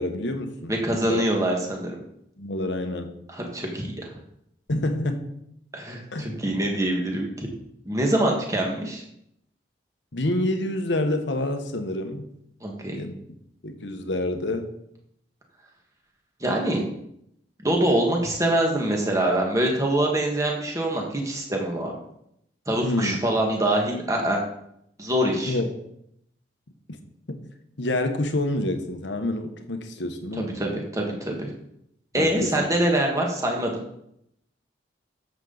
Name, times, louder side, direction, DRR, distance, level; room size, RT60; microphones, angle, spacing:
voice 1, 0.0-0.7 1.1-1.2 2.4-3.1 4.7-5.3 6.1-6.3 10.1-12.3 12.9-13.1 13.6-14.7 22.8-23.2 25.4-25.7 26.9-27.0 27.3-27.4 27.8-30.6 32.2-32.6, left 1 dB, 80° left, 6 dB, 1.2 m, -27 dB
voice 2, 0.7-2.0 3.3-4.1 5.7-7.5 7.9-9.0 12.6-13.0 16.4-16.8 17.6-21.9 22.7-24.4 25.0-25.6 30.3-31.5 32.1-33.8, right 1 dB, 20° right, 0 dB, 1.7 m, -24 dB
10.5 x 7.3 x 4.0 m, 0.77 s
head